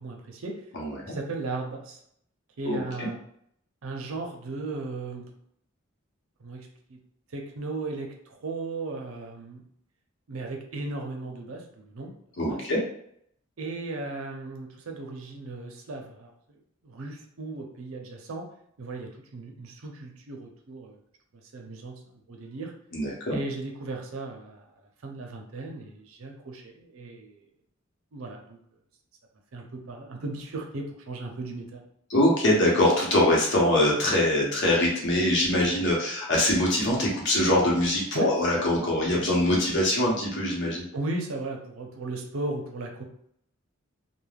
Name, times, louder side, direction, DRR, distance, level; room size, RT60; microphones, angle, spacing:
voice 1, 0.0-0.6 1.1-2.0 2.6-3.2 3.8-5.3 6.4-7.0 7.3-9.6 10.3-12.1 12.5-12.6 13.6-16.3 16.8-18.5 18.8-21.0 21.5-22.0 22.3-22.7 23.3-24.6 25.0-27.4 28.1-28.6 29.5-31.8 38.1-38.3 40.9-43.0, right 2 dB, 90° right, 2 dB, 0.6 m, -36 dB
voice 2, 0.7-1.1 2.7-3.1 12.4-12.8 22.9-23.4 32.1-40.8, left 1 dB, 60° left, -3 dB, 0.8 m, -23 dB
2.3 x 2.1 x 3.2 m, 0.70 s
head